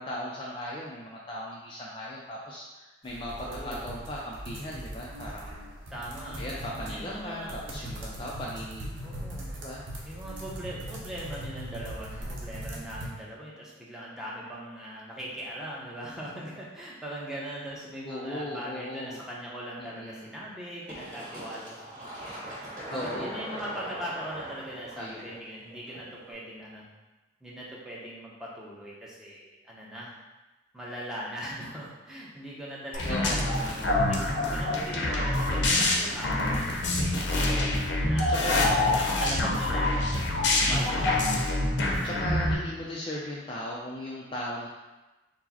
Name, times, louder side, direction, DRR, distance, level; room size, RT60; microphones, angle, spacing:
voice 1, 0.0-5.7 6.4-8.9 9.6-9.8 18.0-19.2 19.8-20.4 22.9-23.4 25.0-25.2 33.0-34.1 34.5-34.8 37.5-37.9 38.3-38.6 40.7-41.0 42.0-44.7, left 1 dB, 25° left, -4 dB, 0.3 m, -38 dB
sound 1, 3.0-13.1, right 1 dB, 70° right, 0.8 m, -40 dB
voice 2, 3.4-3.9 5.9-6.4 6.7-7.6 9.0-9.5 10.0-22.1 22.9-26.8 27.4-30.1 30.7-37.4 38.1-40.2 40.5-41.2, equal, 5° right, -6 dB, 0.7 m, -40 dB
Fill (with liquid), 20.9-26.3, right 1 dB, 35° right, 1.4 m, -40 dB
sound 2, 32.9-42.5, left 2 dB, 65° left, 0.6 m, -26 dB
4.6 x 2.0 x 4.1 m, 1.1 s
head